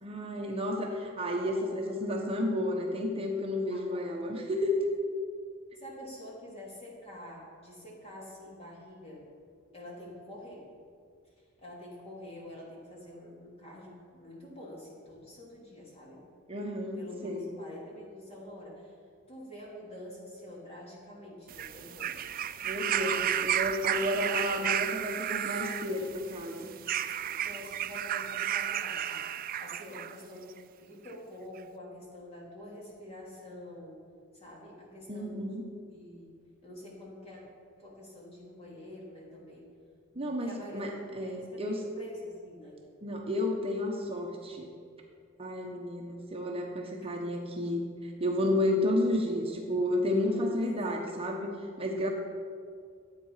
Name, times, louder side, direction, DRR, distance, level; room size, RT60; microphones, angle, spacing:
voice 1, 0.0-4.9 16.5-17.5 22.6-26.7 35.1-35.6 40.1-41.8 43.0-44.7 45.4-52.1, left 1 dB, 30° right, 0 dB, 1.1 m, -31 dB
voice 2, 3.7-4.0 5.7-9.3 9.7-10.7 11.6-16.2 16.9-18.9 19.3-22.2 22.9-23.3 23.9-24.1 24.5-24.8 27.4-34.0 34.3-35.4 35.9-36.4 36.6-37.5 37.8-39.7 40.1-42.8 50.2-50.6, left 1 dB, 30° left, -4 dB, 3.2 m, -47 dB
sound 1, 21.5-30.2 31.1-31.2, right 10 dB, 45° right, 0.4 m, -33 dB
12.5 x 8.6 x 5.7 m, 2.2 s
head